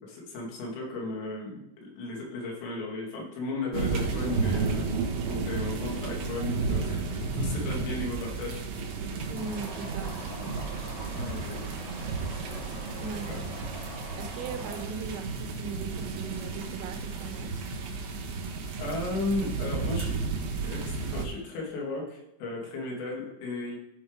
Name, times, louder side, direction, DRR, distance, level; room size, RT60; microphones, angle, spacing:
voice 1, 0.0-4.9 5.2-8.6 8.9-9.2 11.1-11.8 13.3-13.4 18.8-20.2 20.6-23.8, left 2 dB, 75° left, -3 dB, 5.0 m, -35 dB
sound 1, 3.7-21.3, right 4 dB, 65° right, 2.6 m, -32 dB
sound 2, 9.3-14.8, left 2 dB, 50° left, 3.7 m, -44 dB
voice 2, 9.3-10.3 13.0-13.3 14.2-17.5, right 5 dB, 90° right, 5 dB, 3.6 m, -39 dB
15.5 x 5.6 x 3.5 m, 0.85 s
omnidirectional pair, 6.0 m